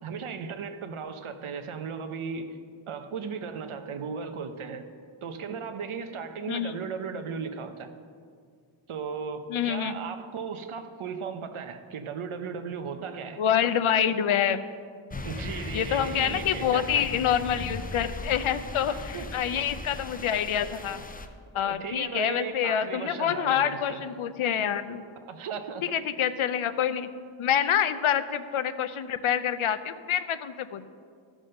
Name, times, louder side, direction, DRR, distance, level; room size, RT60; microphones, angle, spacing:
voice 1, 0.0-2.5 2.9-4.9 5.2-7.9 8.9-13.4 15.2-16.9 18.9-19.3 21.6-24.0 25.3-25.8, right 6 dB, 90° right, 8 dB, 1.0 m, -36 dB
voice 2, 6.5-6.8 9.5-9.9 13.4-14.6 15.7-21.0 21.5-25.0 25.9-27.1 27.4-30.9, left 9 dB, 85° left, 12 dB, 0.7 m, -27 dB
sound 1, 15.1-21.3, left 2 dB, 20° left, 0.5 m, -38 dB
14.0 x 6.3 x 6.4 m, 2.1 s
wide cardioid pair, 170°, 48 cm